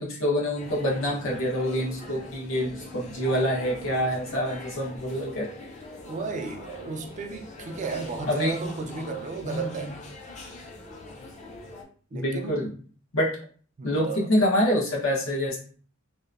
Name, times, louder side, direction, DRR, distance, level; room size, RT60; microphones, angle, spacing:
voice 1, 0.0-5.5 8.3-8.6 9.4-9.9 12.1-12.7 13.1-13.3 13.8-15.6, equal, 85° left, 0.9 m, -26 dB
sound 1, 0.6-11.8, left 2 dB, 35° left, 0.4 m, -43 dB
voice 2, 6.1-9.9 12.1-12.7 13.8-14.3, right 4 dB, 35° right, 0.3 m, -34 dB
2.8 x 2.1 x 2.4 m
head